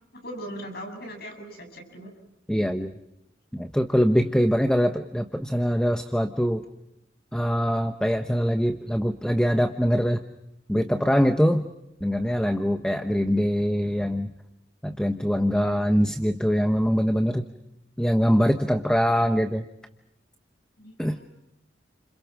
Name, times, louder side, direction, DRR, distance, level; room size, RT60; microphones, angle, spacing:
voice 1, 0.1-2.1 15.6-15.8 20.8-21.2, right 1 dB, 60° left, 3 dB, 7.6 m, -39 dB
voice 2, 2.5-3.0 3.5-6.6 7.3-10.2 10.7-11.6 12.0-14.3 14.8-17.4 18.0-19.6 21.0-21.2, equal, 5° left, 7 dB, 1.0 m, -23 dB
30.0 x 27.5 x 6.1 m, 0.84 s
head